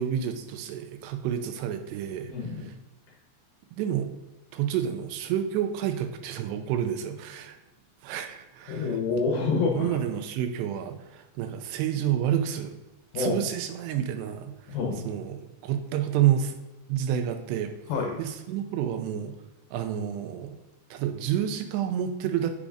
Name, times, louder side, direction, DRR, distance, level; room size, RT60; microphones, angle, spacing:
voice 1, 0.0-2.3 2.6-2.7 3.7-4.1 4.5-7.6 8.0-9.0 9.8-12.7 13.1-14.5 15.1-16.6 16.9-17.7 18.2-19.3 19.7-20.6 20.9-22.5, right 10 dB, 80° right, 7 dB, 2.6 m, -29 dB
voice 2, 2.3-2.7 8.7-10.0 13.1-13.4 14.7-15.1 17.9-18.2, left 4 dB, 75° left, 0 dB, 2.2 m, -27 dB
8.3 x 5.1 x 2.5 m, 1.0 s
omnidirectional pair, 5.2 m